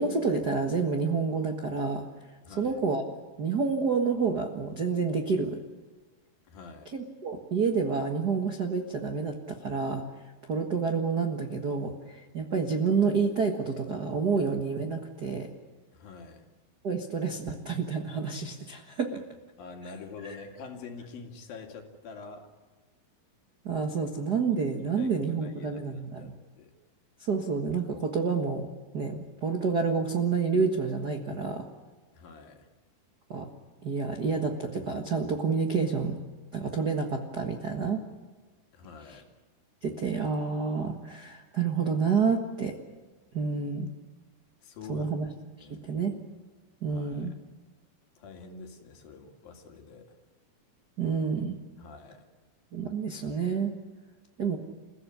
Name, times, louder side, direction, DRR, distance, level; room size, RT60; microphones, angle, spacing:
voice 1, 0.0-2.0 2.6-3.0 3.4-5.6 6.9-10.0 10.5-15.5 16.8-19.2 23.6-26.3 27.2-28.7 28.9-31.7 33.3-33.5 33.8-36.2 36.5-38.0 39.8-42.7 43.3-43.9 44.9-45.3 45.6-46.2 46.8-47.3 51.0-51.5 52.7-53.7 54.4-54.6, right 5 dB, 75° right, 4 dB, 0.9 m, -29 dB
voice 2, 2.4-2.8 6.5-6.9 15.9-16.5 19.6-22.5 25.0-25.1 25.4-26.7 32.1-32.7 38.7-39.2 44.6-45.1 45.6-45.8 46.9-47.3 48.2-50.2 51.8-52.3, left 4 dB, 65° left, 3 dB, 3.9 m, -46 dB
29.0 x 16.0 x 9.8 m, 1.3 s
omnidirectional pair, 4.5 m